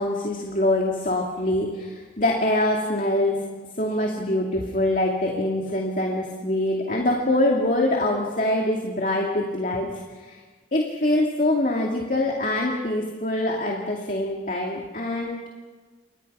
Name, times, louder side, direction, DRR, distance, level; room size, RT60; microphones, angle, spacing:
voice 1, 0.0-3.4 3.8-9.9 10.2-10.4 10.7-15.3, left 1 dB, 45° left, 0 dB, 2.6 m, -24 dB
29.0 x 24.5 x 5.6 m, 1.4 s
head